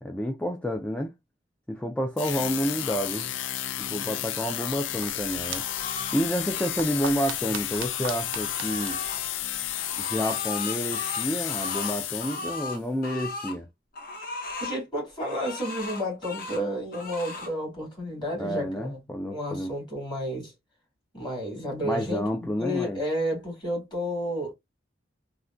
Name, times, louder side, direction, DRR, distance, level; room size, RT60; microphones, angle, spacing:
voice 1, 0.0-1.1 1.7-3.3 3.8-5.7 6.1-9.0 10.1-13.7 18.4-19.7 21.8-23.0, equal, 5° left, 0.3 m, -29 dB
sound 1, 2.2-12.7, left 12 dB, 80° left, 0.4 m, -32 dB
sound 2, 4.8-10.0, right 6 dB, 85° right, 0.4 m, -41 dB
sound 3, 5.4-6.2 7.6-9.2 9.7-13.6 13.9-14.8 15.2-16.6 16.9-17.5, left 3 dB, 50° left, 0.8 m, -37 dB
voice 2, 14.6-19.0 19.3-20.5 21.1-24.5, equal, 25° left, 2.1 m, -31 dB
3.5 x 2.2 x 2.4 m
head